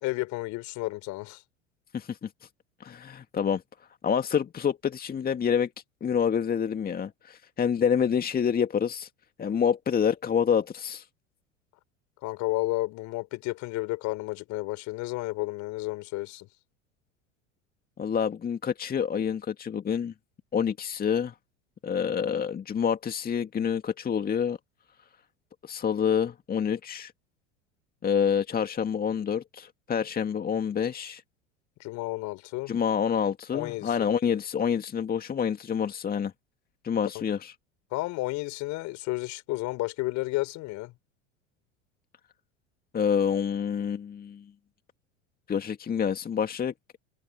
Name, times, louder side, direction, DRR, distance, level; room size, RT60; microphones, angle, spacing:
voice 1, 0.0-1.4 12.2-16.5 31.8-32.7 33.5-34.1 37.1-37.2 37.9-40.9, left 20 dB, 50° left, 4.1 m, -32 dB
voice 2, 1.9-2.3 2.8-3.6 4.0-5.7 6.0-9.1 9.4-11.1 18.0-20.1 20.5-21.3 21.8-24.6 25.6-27.1 28.0-31.2 32.7-36.3 36.8-37.5 42.9-44.4 45.5-46.7, left 7 dB, 25° left, 2.0 m, -27 dB
figure-of-eight pair, 80°, 37 cm